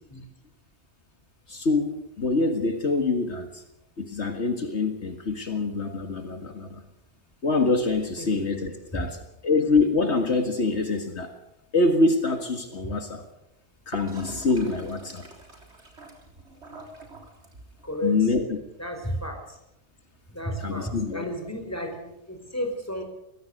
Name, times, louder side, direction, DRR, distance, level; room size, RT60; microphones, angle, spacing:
voice 1, 1.5-3.6 4.0-6.8 7.4-9.2 9.4-11.3 11.7-13.2 13.9-15.2 18.0-18.4 20.6-21.2, left 3 dB, 70° left, 5 dB, 2.1 m, -25 dB
Gurgling / Toilet flush, 13.9-17.9, right 2 dB, 70° right, 3.9 m, -41 dB
voice 2, 17.8-18.3 18.8-19.4 20.3-23.0, equal, 15° left, 4 dB, 4.8 m, -32 dB
23.0 x 16.0 x 7.9 m, 0.86 s
omnidirectional pair, 1.2 m